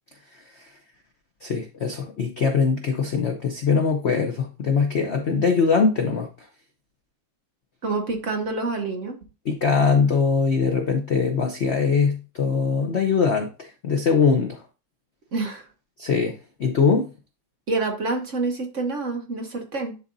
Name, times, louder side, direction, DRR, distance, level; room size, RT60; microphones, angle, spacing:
voice 1, 0.3-0.7 1.4-6.5 9.4-14.6 16.0-17.1, left 5 dB, 70° left, 4 dB, 0.6 m, -22 dB
voice 2, 7.8-9.2 15.3-15.7 17.7-20.0, right 3 dB, 45° right, 3 dB, 1.1 m, -27 dB
11.0 x 4.1 x 2.6 m, 0.32 s
omnidirectional pair, 2.2 m